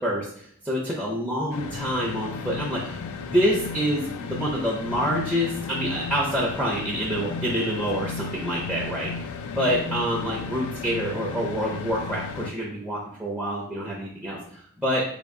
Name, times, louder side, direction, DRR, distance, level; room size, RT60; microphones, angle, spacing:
voice 1, 0.0-9.1 9.5-15.0, equal, 5° right, -5 dB, 0.5 m, -27 dB
sound 1, 1.5-12.5, left 4 dB, 90° left, 0.4 m, -34 dB
3.5 x 2.3 x 3.6 m, 0.62 s
head